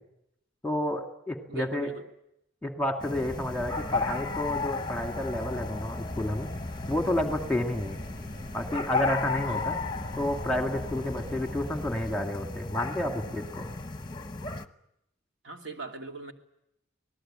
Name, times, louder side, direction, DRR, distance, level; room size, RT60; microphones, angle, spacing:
voice 1, 0.6-1.9 2.6-6.5 6.9-8.0 8.5-9.8 10.2-13.7, left 1 dB, 5° left, 5 dB, 2.1 m, -30 dB
voice 2, 1.5-2.0 9.5-9.7 15.4-16.3, right 3 dB, 65° right, 3 dB, 2.8 m, -40 dB
sound 1, 3.0-14.6, left 3 dB, 20° left, 1.0 m, -35 dB
sound 2, 3.2-12.2, equal, 35° right, 2.2 m, -43 dB
27.0 x 19.0 x 8.9 m, 0.83 s
head